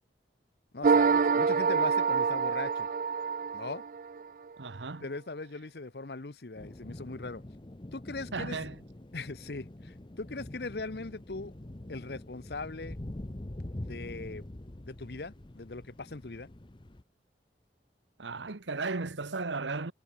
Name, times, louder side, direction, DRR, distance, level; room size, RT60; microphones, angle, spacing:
voice 1, 0.7-2.9 3.5-3.8 5.0-7.4 7.9-8.6 9.1-11.5 11.9-13.0 13.6-14.4 14.9-16.5, left 3 dB, 60° left, 0.9 m, -40 dB
sound 1, 0.8-4.2, right 5 dB, 50° right, 0.4 m, -26 dB
voice 2, 4.6-5.1 8.3-8.8 18.2-19.9, right 3 dB, 90° right, 1.2 m, -35 dB
sound 2, 6.6-17.0, left 1 dB, 25° left, 0.8 m, -44 dB
head